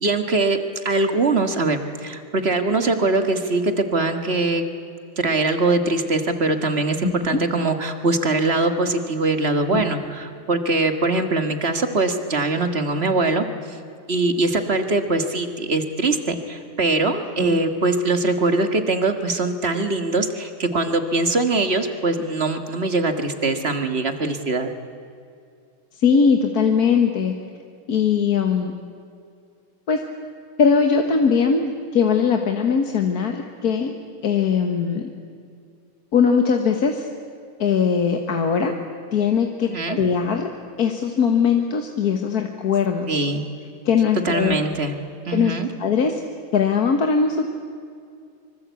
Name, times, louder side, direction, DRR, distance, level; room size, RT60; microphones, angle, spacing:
voice 1, 0.0-0.6 0.8-4.6 5.2-13.8 14.1-24.7 39.6-40.0 43.1-43.4 44.2-45.0 45.3-45.7, right 3 dB, 30° right, 7 dB, 1.7 m, -22 dB
voice 2, 7.0-7.4 9.7-9.8 17.4-17.6 26.0-27.3 27.9-28.7 29.9-30.0 30.6-33.9 34.2-35.1 36.1-37.1 37.6-38.7 39.1-40.5 40.8-43.2 43.9-44.6 45.3-45.5 45.8-46.2 46.5-47.5, left 6 dB, 50° left, 4 dB, 1.7 m, -20 dB
25.0 x 25.0 x 8.3 m, 2.4 s
omnidirectional pair, 2.3 m